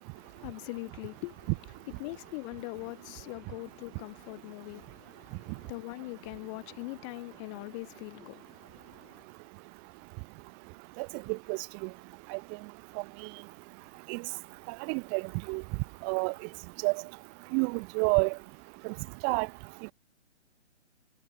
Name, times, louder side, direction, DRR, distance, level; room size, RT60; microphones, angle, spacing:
voice 1, 0.1-1.5 2.0-9.2, left 29 dB, 25° left, 7.7 m, -42 dB
voice 2, 14.9-15.2 15.5-15.6 16.0-16.3 16.8-16.9 17.5-18.3 19.2-19.5, right 40 dB or more, 25° right, 6.6 m, -28 dB
hypercardioid pair, 150°, 36 cm